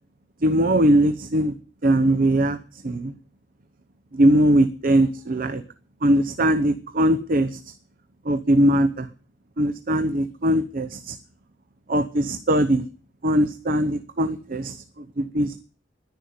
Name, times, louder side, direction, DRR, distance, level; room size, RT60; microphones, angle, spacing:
voice 1, 0.4-1.5 1.8-2.6 2.8-3.1 4.1-5.6 6.0-7.7 8.2-9.1 9.6-11.2 11.9-12.9 13.2-15.6, right 1 dB, 50° right, 10 dB, 0.9 m, -21 dB
11.5 x 10.5 x 9.5 m, 0.40 s
head